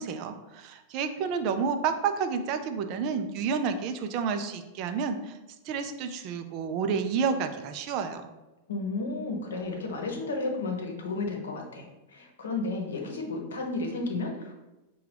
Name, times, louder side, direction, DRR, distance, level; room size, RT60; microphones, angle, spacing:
voice 1, 0.0-5.4 5.7-8.2, right 6 dB, 45° right, 7 dB, 0.4 m, -30 dB
voice 2, 8.7-11.9 12.1-14.5, left 3 dB, 70° left, 2 dB, 0.8 m, -32 dB
5.7 x 2.3 x 3.2 m, 1.0 s
figure-of-eight pair, 95°, 0 cm